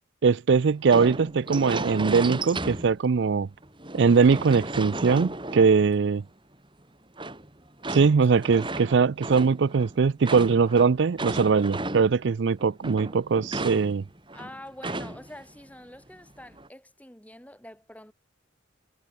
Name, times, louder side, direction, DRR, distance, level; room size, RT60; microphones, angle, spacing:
voice 1, 0.2-3.5 3.9-6.2 7.9-14.0, right 5 dB, 60° right, 0.4 m, -21 dB
sound 1, 0.9-3.2 3.6-6.2 7.2-12.3 12.6-15.4 15.7-15.8 16.3-16.7, right 2 dB, 25° right, 3.9 m, -34 dB
voice 2, 14.3-18.1, left 1 dB, 5° left, 7.0 m, -46 dB
head